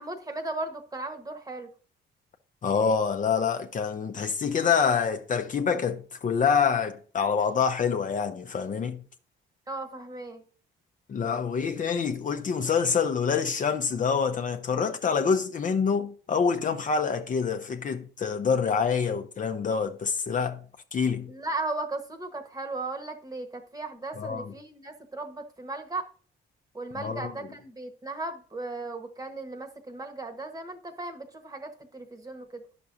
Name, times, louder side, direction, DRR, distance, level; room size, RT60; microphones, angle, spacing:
voice 1, 0.0-1.7 9.7-10.4 21.3-26.1 26.7-32.6, right 2 dB, 20° right, 1.1 m, -36 dB
voice 2, 2.6-9.0 11.1-20.6 20.9-21.3 24.2-24.5 26.9-27.3, left 6 dB, 40° left, 0.6 m, -26 dB
10.5 x 6.0 x 2.6 m
cardioid pair, 90°, 20 cm